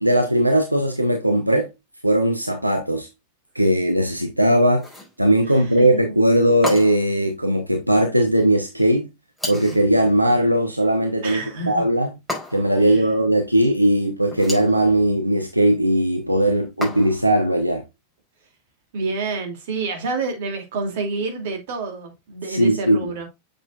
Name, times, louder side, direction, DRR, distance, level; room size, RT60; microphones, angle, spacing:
voice 1, 0.0-1.7 2.0-3.1 3.5-4.9 5.2-9.1 9.5-11.4 11.7-12.1 12.5-17.8 22.5-23.1, right 1 dB, 90° right, 0.9 m, -19 dB
sound 1, 4.7-5.2 6.6-7.2 9.4-9.9 12.3-12.8 14.3-14.8 16.8-17.3, left 2 dB, 5° right, 4.7 m, -32 dB
voice 2, 5.5-6.0 11.2-11.8 12.8-13.1 18.9-23.3, right 3 dB, 55° right, 2.5 m, -28 dB
7.6 x 6.6 x 2.4 m
figure-of-eight pair, 90°, 0 cm